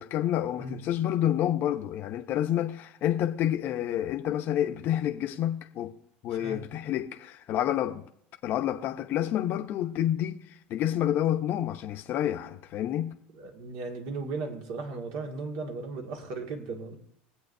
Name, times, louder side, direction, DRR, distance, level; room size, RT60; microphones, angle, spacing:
voice 1, 0.0-6.0 6.2-8.1 8.4-10.4 10.7-13.1, left 11 dB, 50° left, 0.9 m, -29 dB
voice 2, 13.3-16.9, right 3 dB, 70° right, 2.2 m, -36 dB
22.0 x 8.2 x 2.7 m
supercardioid pair, 115°, 5 cm